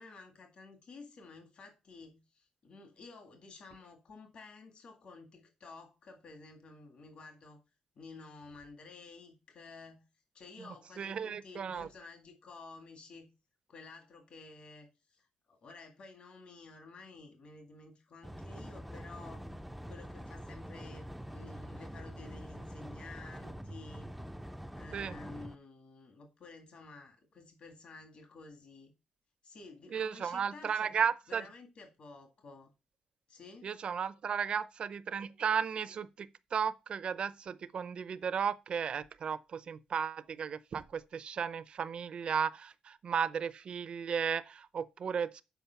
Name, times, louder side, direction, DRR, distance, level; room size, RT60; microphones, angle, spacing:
voice 1, 0.0-7.6 8.0-10.0 10.3-13.3 13.7-19.5 19.9-24.1 24.7-28.9 29.4-30.9 31.3-32.7 33.3-33.7, left 3 dB, 55° left, 2.0 m, -52 dB
voice 2, 11.0-11.9 24.9-25.1 29.9-31.4 33.6-45.4, right 7 dB, 50° right, 0.5 m, -34 dB
sound 1, 18.2-25.6, equal, 5° right, 0.4 m, -45 dB
7.0 x 4.9 x 5.7 m
cardioid pair, 105°, 2 cm